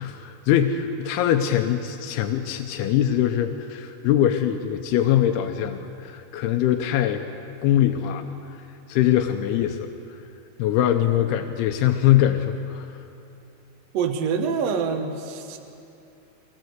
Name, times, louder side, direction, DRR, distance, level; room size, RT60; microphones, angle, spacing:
voice 1, 0.0-7.2 7.6-8.3 8.9-9.9 10.6-13.0, left 11 dB, 85° left, 5 dB, 2.8 m, -22 dB
voice 2, 13.9-15.6, right 6 dB, 60° right, 5 dB, 1.9 m, -25 dB
23.5 x 18.5 x 8.1 m, 2.8 s
omnidirectional pair, 4.5 m